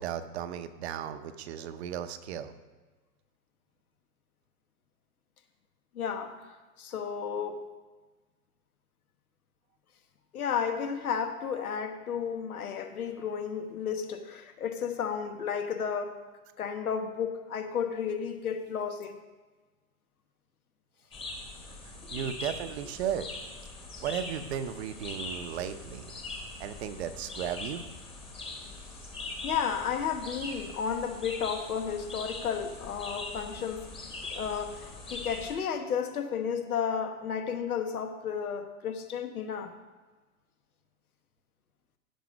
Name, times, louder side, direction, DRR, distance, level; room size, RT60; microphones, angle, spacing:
voice 1, 0.0-2.5 21.8-23.3 24.0-26.2 26.6-27.8, right 9 dB, 50° right, 10 dB, 0.8 m, -35 dB
voice 2, 5.9-7.7 10.3-16.2 16.6-19.2 29.4-33.9 34.3-39.7, left 7 dB, 85° left, 7 dB, 1.3 m, -33 dB
sound 1, 21.1-35.5, left 2 dB, 10° left, 1.2 m, -42 dB
15.5 x 5.6 x 5.2 m, 1.3 s
hypercardioid pair, 140°, 42 cm